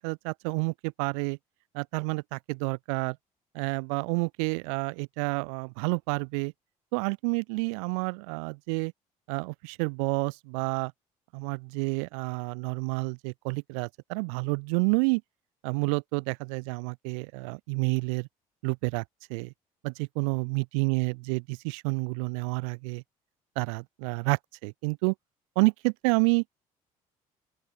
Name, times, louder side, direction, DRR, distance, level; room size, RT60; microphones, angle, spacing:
voice 1, 0.0-1.4 1.7-3.2 3.5-6.5 6.9-8.9 9.3-10.9 11.3-15.2 15.6-18.3 18.6-19.0 19.3-19.5 19.8-23.0 23.6-25.1 25.6-26.4, right 34 dB, 65° right, 5.8 m, -29 dB
open air
figure-of-eight pair, 55°, 18 cm